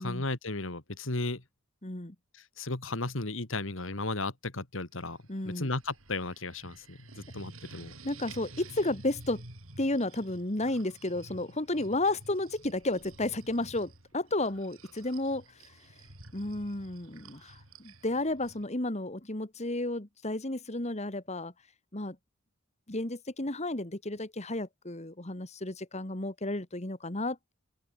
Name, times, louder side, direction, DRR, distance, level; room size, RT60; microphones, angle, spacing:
voice 1, 0.0-1.4 2.3-5.2 5.4-7.9, left 2 dB, 65° left, 2.4 m, -35 dB
voice 2, 1.8-2.1 5.3-5.7 8.0-9.4 9.8-15.7 16.3-21.5 21.9-22.2 22.9-27.5, left 2 dB, 35° left, 2.2 m, -32 dB
sound 1, 4.9-18.7, right 2 dB, 80° right, 5.6 m, -51 dB
open air
head